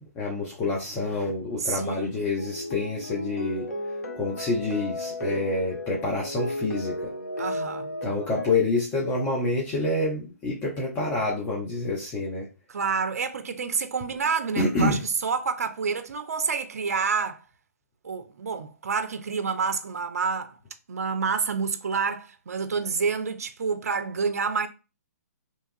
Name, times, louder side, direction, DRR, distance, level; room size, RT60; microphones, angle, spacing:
voice 1, 0.2-3.6 4.2-7.0 8.0-12.5 14.6-15.0, left 2 dB, 20° left, 0.6 m, -27 dB
voice 2, 1.6-2.1 7.4-7.9 12.7-17.4 18.0-20.6 20.9-24.7, right 5 dB, 65° right, 0.4 m, -28 dB
sound 1, 2.4-8.5, left 1 dB, 80° left, 0.7 m, -34 dB
2.9 x 2.3 x 2.6 m
figure-of-eight pair, 130°, 9 cm